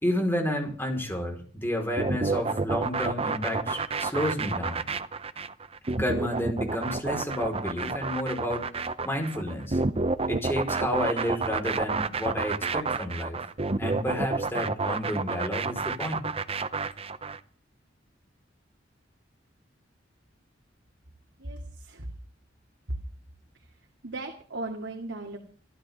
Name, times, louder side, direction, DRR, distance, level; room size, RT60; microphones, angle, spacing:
voice 1, 0.0-4.9 6.0-9.8 10.3-13.4 13.8-16.3, left 1 dB, 15° left, 2 dB, 4.5 m, -31 dB
sound 1, 2.0-17.4, right 3 dB, 30° right, 0.8 m, -29 dB
voice 2, 21.4-22.1 22.9-23.0 23.6-23.7 24.0-25.4, right 2 dB, 85° right, 1 dB, 2.5 m, -36 dB
26.0 x 13.0 x 3.7 m, 0.42 s
head